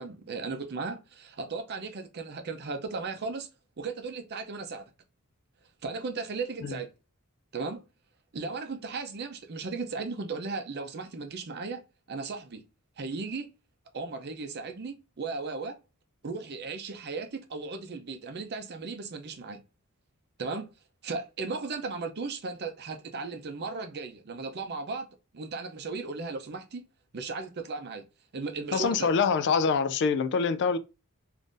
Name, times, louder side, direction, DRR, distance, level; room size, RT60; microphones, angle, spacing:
voice 1, 0.0-3.5 3.8-4.9 5.8-6.9 7.5-7.8 8.3-11.8 12.1-12.6 13.0-13.5 13.9-15.8 16.2-19.6 20.4-20.7 21.0-25.1 25.3-26.8 27.1-28.0 28.3-29.1, right 4 dB, 50° right, 0.5 m, -36 dB
voice 2, 28.7-30.8, left 5 dB, 50° left, 0.3 m, -25 dB
3.6 x 2.6 x 2.5 m
head